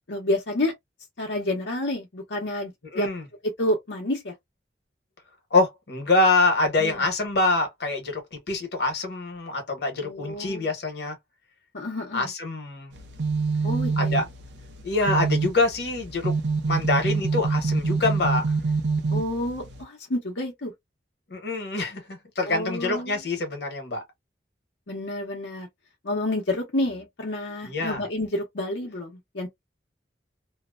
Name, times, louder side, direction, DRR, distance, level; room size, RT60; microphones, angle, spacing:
voice 1, 0.1-0.7 1.2-3.1 3.6-4.3 6.8-7.1 10.0-10.7 11.7-12.3 13.6-14.2 19.1-20.7 22.5-23.2 24.9-25.7 26.0-29.5, left 1 dB, 90° left, 0.9 m, -29 dB
voice 2, 2.9-3.2 5.5-11.2 12.1-12.9 14.0-14.2 14.8-16.4 16.7-18.4 21.3-24.0 27.6-28.0, left 2 dB, 65° left, 1.1 m, -25 dB
sound 1, 12.9-19.8, right 4 dB, 75° right, 0.6 m, -26 dB
2.8 x 2.1 x 2.3 m
head